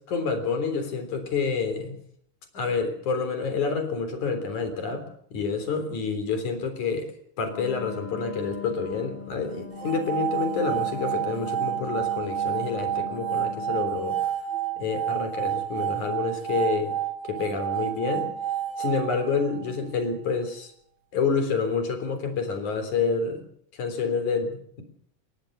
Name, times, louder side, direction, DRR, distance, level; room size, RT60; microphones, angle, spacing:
voice 1, 0.1-1.9 2.5-7.1 7.4-14.2 14.8-17.0 17.2-18.3 18.8-20.7 21.1-23.4 23.7-24.8, left 5 dB, 75° left, 8 dB, 5.1 m, -28 dB
Wind instrument woodwind instrument, 7.5-14.1, left 7 dB, 50° left, 6.3 m, -40 dB
sound 1, 9.7-19.9, right 11 dB, 75° right, 4.1 m, -30 dB
21.5 x 20.5 x 6.7 m, 0.65 s
omnidirectional pair, 3.5 m